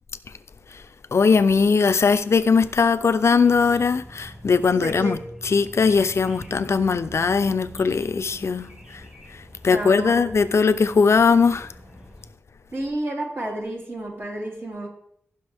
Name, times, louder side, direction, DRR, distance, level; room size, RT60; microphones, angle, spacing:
voice 1, 1.1-5.2 5.4-8.7 9.6-11.7, left 5 dB, 70° left, 0.6 m, -19 dB
sound 1, 3.4-12.3, right 1 dB, 30° right, 2.4 m, -44 dB
voice 2, 4.7-5.2 9.7-10.3 12.7-14.9, right 1 dB, 50° right, 3.1 m, -30 dB
15.0 x 6.1 x 3.5 m
wide cardioid pair, 75°, 5 cm